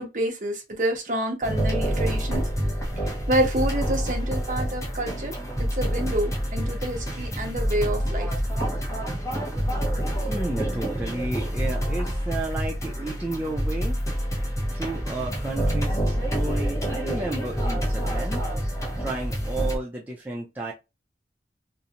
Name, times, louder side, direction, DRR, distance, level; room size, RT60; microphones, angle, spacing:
voice 1, 0.0-2.4 3.0-5.3 5.7-8.3, right 1 dB, 45° right, 0.7 m, -28 dB
sound 1, 1.4-19.8, equal, 20° left, 0.7 m, -27 dB
voice 2, 10.2-14.0 14.7-18.4 19.0-20.7, right 2 dB, 10° right, 0.4 m, -32 dB
2.5 x 2.1 x 2.8 m
head